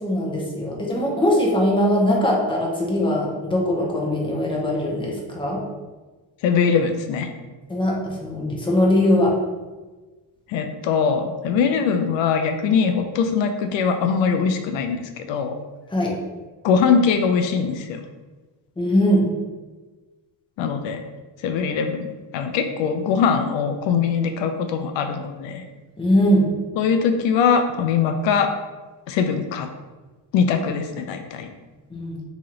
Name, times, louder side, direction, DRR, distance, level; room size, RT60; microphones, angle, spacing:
voice 1, 0.0-5.6 7.7-9.4 15.9-16.1 18.8-19.3 26.0-26.5 31.9-32.2, left 1 dB, 10° left, -2 dB, 0.7 m, -21 dB
voice 2, 6.4-7.3 10.5-15.6 16.6-18.0 20.6-21.0 21.4-25.6 26.8-28.5 29.1-29.7 30.3-31.5, left 6 dB, 85° left, 7 dB, 0.5 m, -22 dB
3.0 x 2.9 x 3.8 m, 1.2 s
cardioid pair, 130°, 44 cm